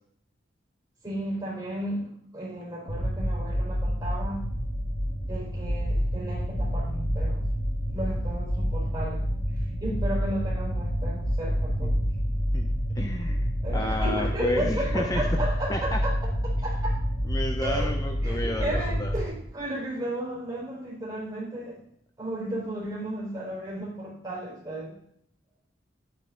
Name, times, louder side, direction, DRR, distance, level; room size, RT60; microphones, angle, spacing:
voice 1, 1.0-4.5 5.3-7.4 7.9-9.2 9.6-12.0 12.2-12.3 13.6-16.2 16.4-16.9 17.6-18.0 18.2-21.8 22.2-25.0, right 1 dB, 20° right, -4 dB, 4.5 m, -34 dB
sound 1, 2.9-19.2, equal, 85° left, 2.3 m, -28 dB
voice 2, 12.9-15.3 15.7-16.0 17.2-19.1, left 1 dB, 20° left, 3 dB, 0.7 m, -31 dB
11.0 x 8.5 x 3.9 m, 0.69 s
head